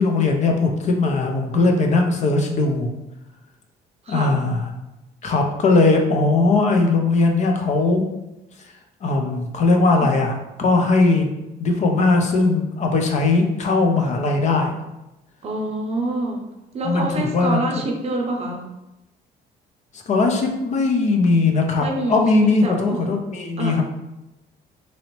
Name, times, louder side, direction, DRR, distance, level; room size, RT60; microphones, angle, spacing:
voice 1, 0.0-2.9 4.1-4.7 5.2-8.0 9.0-11.3 11.6-14.7 16.8-17.6 20.1-23.8, left 3 dB, 45° left, 3 dB, 0.5 m, -19 dB
voice 2, 4.0-4.4 15.4-16.4 16.7-18.7 21.8-23.0 23.6-23.8, right 1 dB, 40° right, 1 dB, 0.6 m, -26 dB
2.9 x 2.7 x 2.9 m, 0.96 s
cardioid pair, 110°, 17 cm